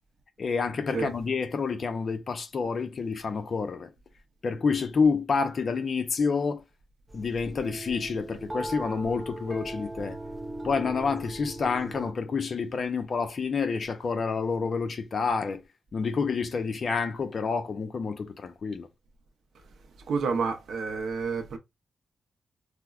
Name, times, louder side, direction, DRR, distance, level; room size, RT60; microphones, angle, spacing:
voice 1, 0.4-3.9 4.4-6.6 7.1-10.2 10.6-15.6 15.9-18.9, left 5 dB, 50° left, 0.5 m, -28 dB
sound 1, 7.1-12.1, right 1 dB, 25° right, 0.3 m, -38 dB
voice 2, 20.1-21.6, right 5 dB, 85° right, 0.5 m, -29 dB
4.6 x 2.1 x 2.3 m
wide cardioid pair, 125°, 0 cm